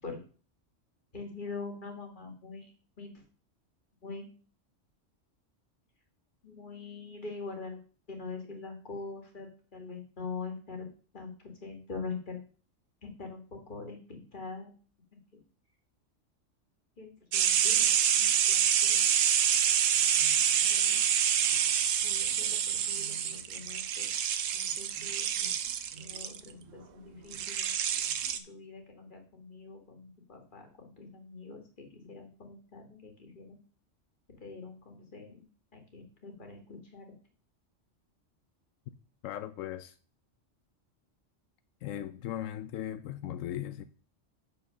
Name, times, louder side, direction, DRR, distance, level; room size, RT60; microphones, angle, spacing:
voice 1, 1.1-2.7 3.0-3.2 4.0-4.3 6.4-10.9 11.1-12.4 13.0-14.7 17.0-17.9 18.2-19.0 20.6-21.0 22.0-24.1 24.5-25.5 26.0-27.7 28.3-33.6 34.4-35.4 35.7-37.1, left 4 dB, 40° left, 2.1 m, -44 dB
sound 1, 17.3-26.4 27.3-28.4, right 9 dB, 85° right, 1.1 m, -27 dB
voice 2, 39.2-39.9 41.8-43.8, left 11 dB, 85° left, 0.9 m, -38 dB
6.5 x 5.6 x 6.5 m
omnidirectional pair, 1.3 m